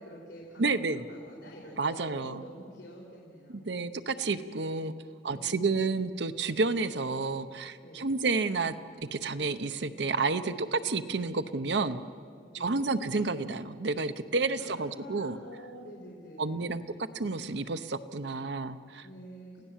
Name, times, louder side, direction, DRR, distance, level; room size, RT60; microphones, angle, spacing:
voice 1, 0.0-3.7 5.3-5.7 7.8-8.1 12.5-12.8 14.6-16.8 19.0-19.6, equal, 85° left, -3 dB, 3.9 m, -48 dB
voice 2, 0.6-1.0 1.8-2.4 3.5-4.9 5.2-8.8 9.1-12.0 12.5-15.4 16.4-16.8 17.1-19.1, right 3 dB, 75° right, 10 dB, 0.8 m, -30 dB
29.0 x 16.5 x 7.4 m, 2.2 s
head